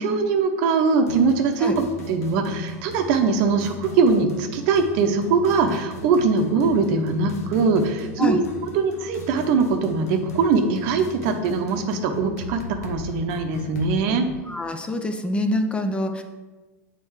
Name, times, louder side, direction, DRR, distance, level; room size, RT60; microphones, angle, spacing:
voice 1, 0.0-8.4 8.7-14.3, right 4 dB, 60° right, 6 dB, 0.7 m, -21 dB
sound 1, 1.1-14.0, left 3 dB, 80° left, 0.8 m, -39 dB
voice 2, 14.5-16.2, left 1 dB, 15° left, 6 dB, 0.5 m, -25 dB
7.1 x 4.1 x 3.2 m, 1.2 s
hypercardioid pair, 95°, 8 cm